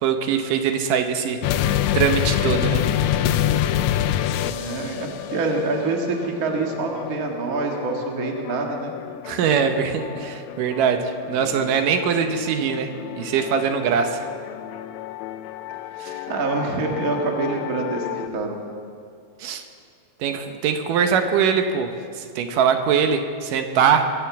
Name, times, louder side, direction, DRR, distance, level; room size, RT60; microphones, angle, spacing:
voice 1, 0.0-1.4 1.9-2.8 9.3-12.9 13.2-14.3 16.0-16.2 19.4-19.6 20.2-21.9 22.2-24.1, right 7 dB, 80° right, 6 dB, 2.5 m, -22 dB
sound 1, 1.4-18.3, left 11 dB, 90° left, 1.6 m, -28 dB
voice 2, 4.3-8.9 16.1-18.6, right 3 dB, 35° right, 1 dB, 1.4 m, -26 dB
23.0 x 8.1 x 7.2 m, 2.3 s
omnidirectional pair, 3.8 m